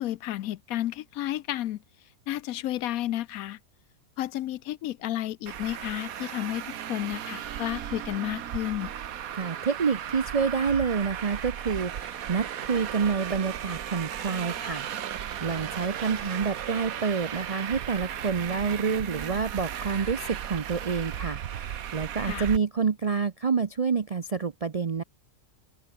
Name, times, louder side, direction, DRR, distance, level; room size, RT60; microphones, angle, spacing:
voice 1, 0.0-1.8 2.3-3.6 4.2-8.9 22.3-22.5, left 14 dB, 85° left, 1.1 m, -32 dB
Traffic noise roadway noise, 5.5-22.6, right 10 dB, 85° right, 1.4 m, -36 dB
voice 2, 9.3-14.9 15.4-25.0, right 5 dB, 40° right, 0.5 m, -28 dB
open air
omnidirectional pair, 1.5 m